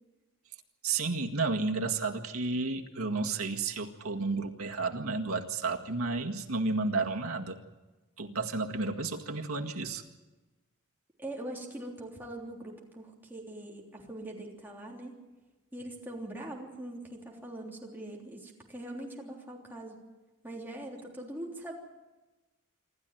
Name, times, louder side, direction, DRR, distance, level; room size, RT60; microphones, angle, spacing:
voice 1, 0.8-7.6 8.2-10.0, right 3 dB, 85° right, 3 dB, 1.9 m, -32 dB
voice 2, 11.2-15.1 15.7-20.0 20.4-21.7, right 1 dB, 10° right, -2 dB, 3.4 m, -42 dB
27.0 x 13.0 x 9.3 m, 1.1 s
head